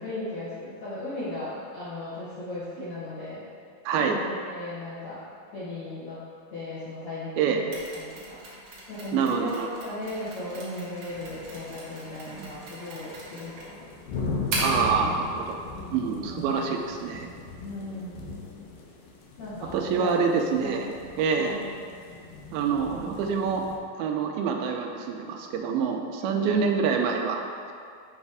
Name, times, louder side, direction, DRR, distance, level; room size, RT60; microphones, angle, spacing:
voice 1, 0.0-3.4 4.0-5.2 5.5-6.2 6.5-8.4 8.9-13.8 16.2-16.7 17.6-18.2 19.4-20.8 21.4-21.6 26.1-26.6, left 2 dB, 60° left, -12 dB, 1.6 m, -37 dB
voice 2, 3.9-4.2 7.4-7.6 9.1-9.7 12.4-12.5 14.6-15.6 15.9-17.3 19.7-21.6 22.5-23.7 24.0-27.7, right 6 dB, 90° right, 3 dB, 2.4 m, -26 dB
Mechanisms, 7.7-14.9, right 2 dB, 75° right, 1.3 m, -38 dB
sound 1, 11.1-12.8 13.1-23.8, left 3 dB, 80° left, 2.4 m, -38 dB
7.3 x 3.2 x 4.8 m, 2.3 s
omnidirectional pair, 4.2 m